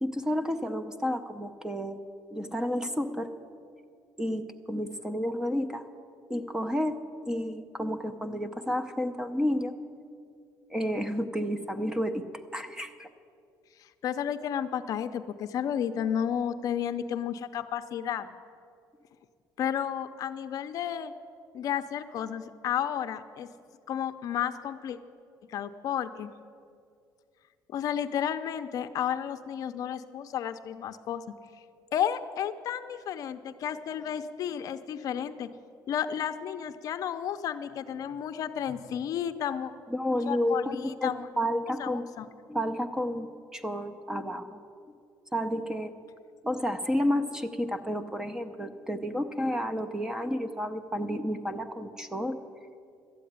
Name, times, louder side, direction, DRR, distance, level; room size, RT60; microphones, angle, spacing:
voice 1, 0.0-2.0 2.3-3.3 4.2-5.8 6.3-9.7 10.7-12.2 12.5-13.1 39.9-42.0 42.5-44.6 44.9-45.0 45.3-45.9 46.4-52.4, equal, 10° right, 8 dB, 0.5 m, -31 dB
voice 2, 14.0-18.3 19.6-21.1 21.5-23.5 23.9-25.0 25.5-26.3 27.7-31.2 31.9-35.5 35.9-39.7 40.3-41.3 41.8-42.3, left 9 dB, 50° left, 9 dB, 0.5 m, -32 dB
13.0 x 8.4 x 9.3 m, 2.3 s
cardioid pair, 180°, 8 cm